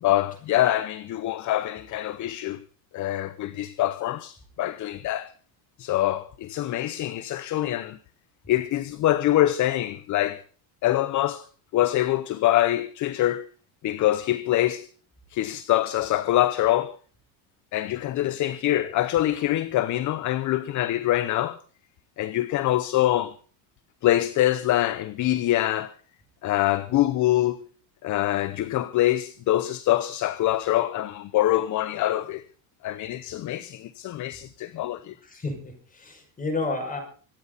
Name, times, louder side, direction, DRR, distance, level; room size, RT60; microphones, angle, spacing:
voice 1, 0.0-2.6 2.9-5.3 5.8-8.0 8.5-10.4 10.8-11.5 11.7-13.5 13.8-14.9 15.3-17.0 17.7-21.6 22.2-23.3 24.0-25.9 26.4-27.7 28.0-32.4 32.8-35.1, left 14 dB, 40° left, 0.8 m, -24 dB
voice 2, 35.2-37.0, left 3 dB, 15° left, 5.9 m, -31 dB
25.5 x 9.7 x 4.0 m
cardioid pair, 140°, 46 cm